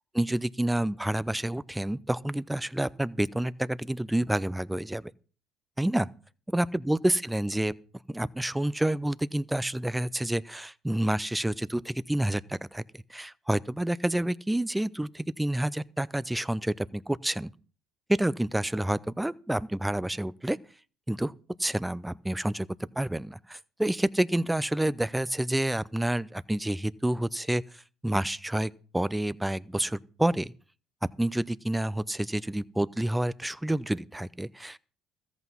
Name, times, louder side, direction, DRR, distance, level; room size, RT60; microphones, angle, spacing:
voice 1, 0.1-5.1 5.8-6.1 6.5-7.7 8.1-17.5 18.1-20.6 21.1-21.3 21.6-22.7 23.0-30.5 31.2-34.8, right 1 dB, 5° right, 0.6 m, -29 dB
14.0 x 8.3 x 5.5 m
supercardioid pair, 75°, 0 cm